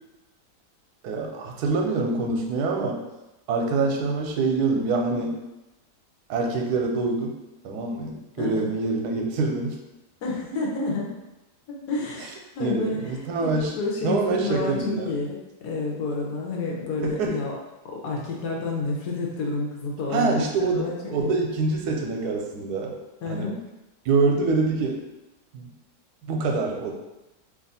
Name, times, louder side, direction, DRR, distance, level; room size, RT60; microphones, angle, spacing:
voice 1, 1.0-3.0 3.5-5.4 6.3-7.4 7.6-9.8 12.6-13.7 14.0-15.1 17.0-17.4 20.1-23.0 23.3-23.5 24.1-25.0 25.5-25.7 26.3-26.9, right 3 dB, 85° right, 1 dB, 1.1 m, -25 dB
voice 2, 8.4-8.7 10.2-11.1 11.7-17.6 17.8-20.5 20.7-21.3 23.2-23.6, left 3 dB, 80° left, -2 dB, 1.4 m, -30 dB
3.0 x 2.5 x 4.0 m, 0.97 s
omnidirectional pair, 1.7 m